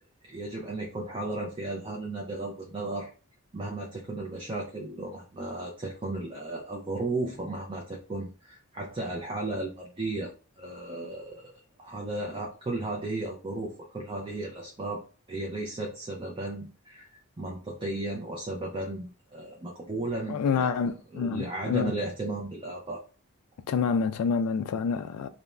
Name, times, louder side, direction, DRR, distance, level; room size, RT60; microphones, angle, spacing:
voice 1, 0.2-3.1 3.5-11.5 11.8-15.0 15.3-20.7 21.1-23.0, right 2 dB, 25° right, 0.4 m, -35 dB
voice 2, 20.3-21.9 23.7-25.3, left 6 dB, 90° left, 0.3 m, -27 dB
2.4 x 2.0 x 3.1 m
head